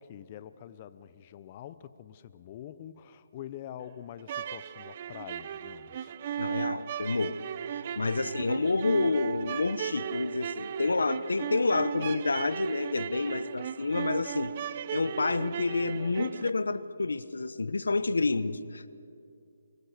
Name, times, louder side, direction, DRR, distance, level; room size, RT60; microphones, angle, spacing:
voice 1, 0.0-6.2 8.0-8.4, left 10 dB, 30° left, 14 dB, 0.7 m, -46 dB
sound 1, 4.2-16.5, right 8 dB, 40° right, 0.6 m, -36 dB
voice 2, 6.4-7.5 8.0-14.5 14.9-18.9, left 3 dB, 90° left, 15 dB, 0.9 m, -29 dB
24.5 x 22.5 x 6.6 m, 2.5 s
hypercardioid pair, 155°, 0 cm